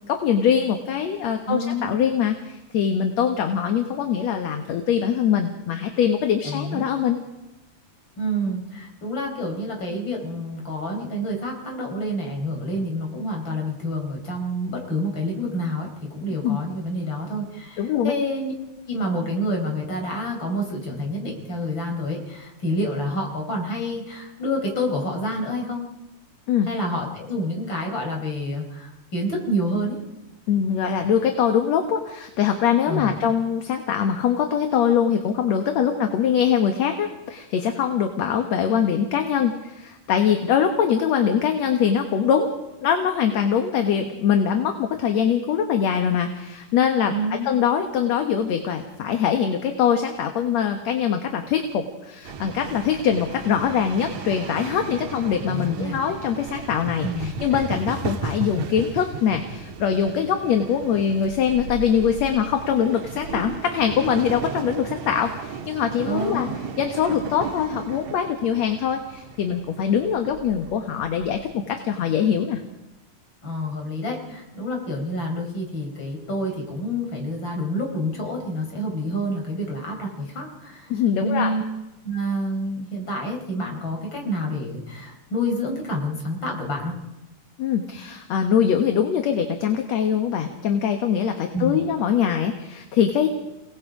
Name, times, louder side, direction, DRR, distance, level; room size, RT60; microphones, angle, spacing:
voice 1, 0.1-7.2 16.4-16.6 17.8-18.1 26.5-26.7 30.5-42.5 42.8-47.1 47.5-66.5 66.8-72.6 80.9-81.5 87.6-93.3, left 8 dB, 60° left, 5 dB, 2.3 m, -23 dB
voice 2, 1.5-1.9 6.4-6.9 8.2-18.5 18.9-25.8 26.7-30.0 32.9-33.1 47.1-47.5 55.4-56.0 57.0-57.3 66.0-66.5 73.4-80.9 81.2-81.6 82.0-86.9 91.3-91.8, equal, 35° left, 1 dB, 4.9 m, -28 dB
sound 1, 52.2-71.5, right 5 dB, 60° right, 2.5 m, -35 dB
30.0 x 18.5 x 5.0 m, 0.98 s
omnidirectional pair, 3.9 m